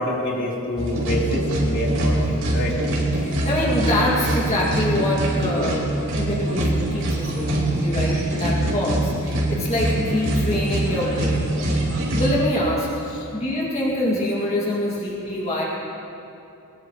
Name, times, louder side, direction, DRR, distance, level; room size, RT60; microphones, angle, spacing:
voice 1, 0.0-2.7 13.1-13.3, left 1 dB, 55° left, -4 dB, 3.4 m, -27 dB
sound 1, 0.8-12.3, right 1 dB, 70° right, 4.2 m, -23 dB
voice 2, 3.2-11.8 12.1-13.0 13.3-15.7, left 1 dB, 30° left, -5 dB, 2.2 m, -25 dB
22.0 x 20.5 x 3.1 m, 2.7 s
head